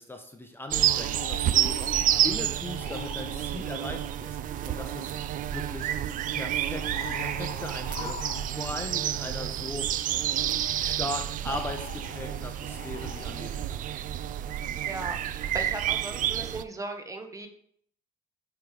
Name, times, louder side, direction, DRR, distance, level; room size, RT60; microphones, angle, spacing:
voice 1, 0.0-1.9 2.2-4.4 4.7-5.1 5.5-6.0 6.3-9.9 10.8-13.8, left 2 dB, 15° left, 4 dB, 0.8 m, -38 dB
sound 1, 0.7-16.6, right 11 dB, 50° right, 0.4 m, -29 dB
sound 2, 0.9-3.5 5.3-5.4 6.7-8.9 10.8-10.9 11.4-13.6 16.7-16.8, left 10 dB, 60° left, 0.6 m, -44 dB
voice 2, 14.8-17.5, right 2 dB, 20° right, 5 dB, 1.0 m, -37 dB
8.8 x 3.3 x 4.8 m, 0.63 s
cardioid pair, 110°, 17 cm